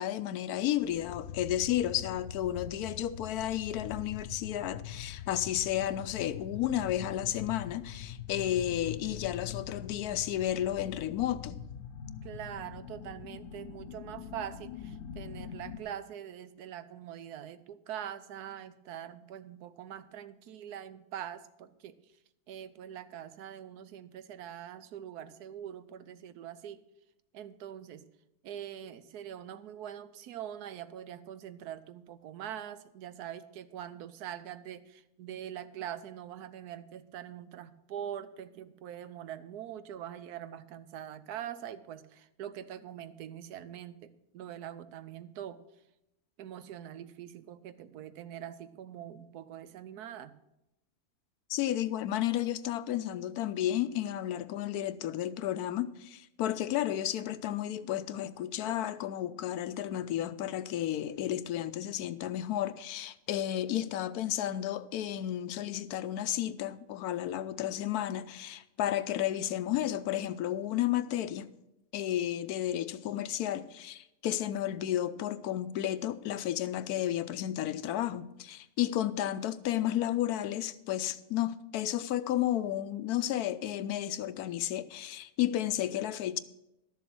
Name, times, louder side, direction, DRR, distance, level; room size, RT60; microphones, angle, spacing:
voice 1, 0.0-11.6 51.5-71.5 71.9-86.4, left 12 dB, 85° left, 1.1 m, -32 dB
sound 1, 0.8-15.8, left 8 dB, 65° left, 1.0 m, -43 dB
voice 2, 12.2-22.0 22.5-26.8 27.3-28.1 28.4-45.6 46.4-50.3, right 10 dB, 85° right, 1.2 m, -43 dB
12.0 x 7.1 x 6.0 m
omnidirectional pair, 1.6 m